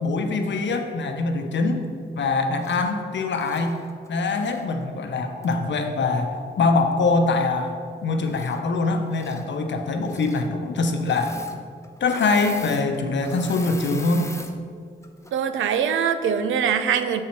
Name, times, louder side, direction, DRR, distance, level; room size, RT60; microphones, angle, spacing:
voice 1, 0.0-1.9 2.1-3.8 4.1-11.3 12.0-14.3, left 3 dB, 65° left, 5 dB, 0.8 m, -23 dB
Engine / Mechanisms, 2.6-2.9 3.3-4.7 5.4-5.5 8.2-8.8 9.1-9.5 10.0-10.5 11.0-11.6 11.8-14.5 15.0-15.3, left 2 dB, 15° left, 0.8 m, -41 dB
voice 2, 15.3-17.2, right 7 dB, 85° right, 9 dB, 0.5 m, -22 dB
6.5 x 4.4 x 5.8 m, 2.2 s
supercardioid pair, 45°, 20 cm